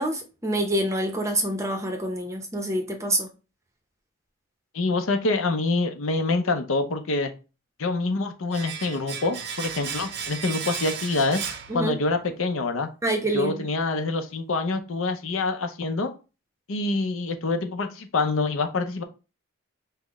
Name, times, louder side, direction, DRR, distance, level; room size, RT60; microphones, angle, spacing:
voice 1, 0.0-3.3 11.7-12.0 13.0-13.7, right 1 dB, 15° right, 0.6 m, -26 dB
voice 2, 4.7-7.3 7.8-11.4 11.7-12.9 13.3-16.1 16.7-19.0, left 3 dB, 75° left, 0.6 m, -26 dB
Domestic sounds home sounds, 8.5-12.3 12.6-12.7, right 7 dB, 50° right, 0.6 m, -35 dB
5.7 x 2.1 x 3.4 m
head